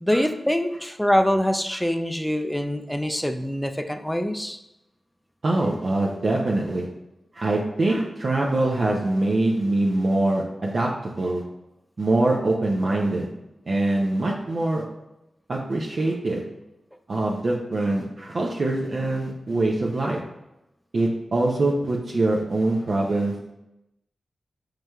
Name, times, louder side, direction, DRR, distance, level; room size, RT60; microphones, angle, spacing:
voice 1, 0.0-4.6, equal, 5° left, 7 dB, 0.3 m, -24 dB
voice 2, 5.4-6.9 7.4-11.4 12.0-13.3 13.7-14.8 15.5-16.4 17.1-20.2 20.9-23.5, right 2 dB, 65° right, -3 dB, 0.5 m, -23 dB
4.9 x 3.1 x 2.3 m, 0.91 s
cardioid pair, 40°, 0 cm